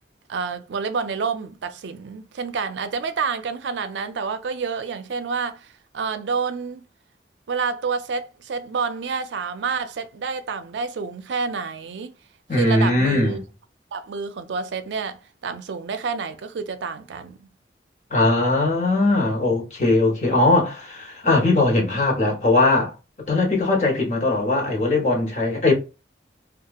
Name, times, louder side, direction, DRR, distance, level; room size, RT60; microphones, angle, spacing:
voice 1, 0.3-6.8 7.5-12.1 12.5-13.5 13.9-17.5, right 5 dB, 85° right, 0.4 m, -28 dB
voice 2, 12.5-13.4 18.1-22.9 23.3-25.7, left 2 dB, 40° left, 1.0 m, -20 dB
2.8 x 2.3 x 2.3 m
head